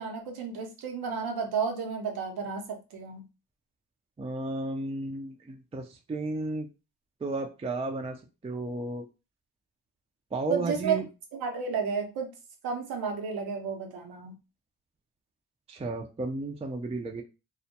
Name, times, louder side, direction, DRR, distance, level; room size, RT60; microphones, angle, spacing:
voice 1, 0.0-3.3 10.5-11.0 11.3-12.3 12.6-14.3, right 6 dB, 80° right, 3 dB, 0.8 m, -32 dB
voice 2, 4.2-6.7 7.2-8.2 8.4-9.0 10.3-11.0 15.7-17.2, right 2 dB, 15° right, 2 dB, 0.4 m, -33 dB
2.2 x 2.1 x 2.7 m, 0.29 s
supercardioid pair, 50°, 36 cm